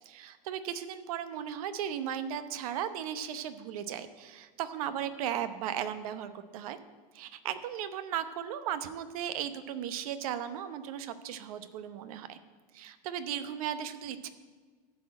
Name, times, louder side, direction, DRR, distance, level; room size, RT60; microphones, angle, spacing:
voice 1, 0.0-6.8 7.1-12.4 12.7-14.3, right 9 dB, 80° right, 12 dB, 0.8 m, -36 dB
13.0 x 4.3 x 8.5 m, 1.5 s
supercardioid pair, 175°, 18 cm